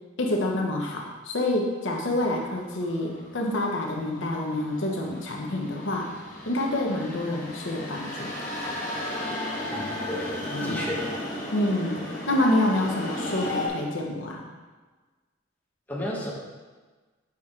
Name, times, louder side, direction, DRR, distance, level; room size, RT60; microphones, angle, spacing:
voice 1, 0.2-6.1 6.4-8.3 10.5-10.8 11.5-14.4, left 1 dB, 80° left, 0 dB, 1.0 m, -27 dB
sound 1, 2.0-13.7, left 1 dB, 40° left, 1.7 m, -35 dB
voice 2, 9.7-11.1 15.9-16.3, left 1 dB, 10° left, -5 dB, 1.3 m, -33 dB
6.1 x 5.9 x 3.8 m, 1.3 s
head